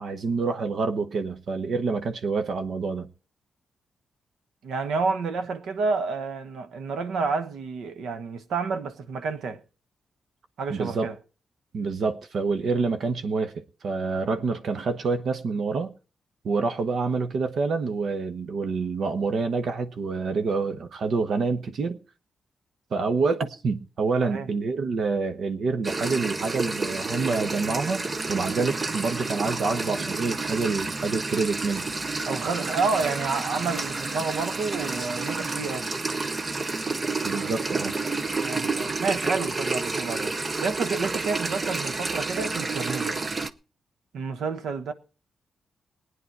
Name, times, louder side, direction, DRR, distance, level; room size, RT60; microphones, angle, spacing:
voice 1, 0.0-3.1 10.7-11.1 11.7-15.9 16.4-22.0 22.9-31.9 37.2-38.0, right 4 dB, 65° right, 1.0 m, -27 dB
voice 2, 4.6-9.6 10.6-11.1 24.2-24.5 30.0-30.1 32.3-35.9 38.4-40.3 40.6-43.2 44.1-44.9, right 4 dB, 85° right, 1.3 m, -29 dB
sound 1, 25.8-43.5, right 3 dB, 30° right, 0.7 m, -30 dB
18.5 x 9.8 x 4.7 m
wide cardioid pair, 125°, 0 cm